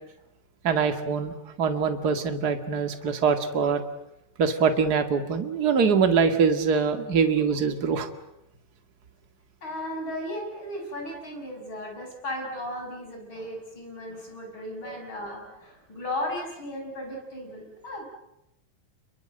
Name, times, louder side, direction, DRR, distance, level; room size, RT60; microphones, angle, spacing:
voice 1, 0.6-3.8 4.4-8.1 14.9-15.0, right 6 dB, 35° right, 7 dB, 2.0 m, -23 dB
voice 2, 9.6-18.0, left 1 dB, 35° left, 1 dB, 6.9 m, -35 dB
29.0 x 22.5 x 7.9 m, 0.86 s
omnidirectional pair, 3.7 m